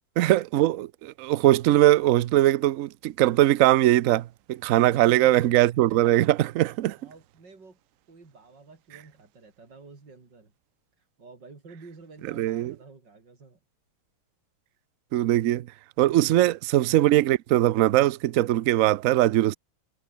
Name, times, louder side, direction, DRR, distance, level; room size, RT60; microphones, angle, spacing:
voice 1, 0.2-7.0 12.4-12.7 15.1-15.7 16.0-19.6, right 14 dB, 90° right, 0.7 m, -21 dB
voice 2, 6.6-7.8 8.1-10.5 11.0-13.6, right 4 dB, 65° right, 4.8 m, -50 dB
omnidirectional pair, 2.1 m